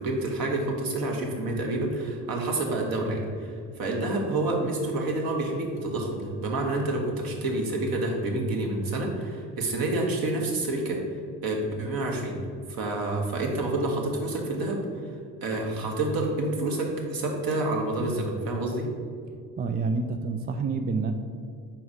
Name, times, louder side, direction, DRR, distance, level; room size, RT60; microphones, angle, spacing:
voice 1, 0.0-11.0 11.4-12.4 12.7-14.8 15.4-18.9, right 2 dB, 50° right, 0 dB, 1.4 m, -28 dB
voice 2, 19.6-21.1, right 4 dB, 25° right, 7 dB, 0.3 m, -28 dB
4.6 x 4.3 x 5.0 m, 2.2 s
hypercardioid pair, 60°, 45 cm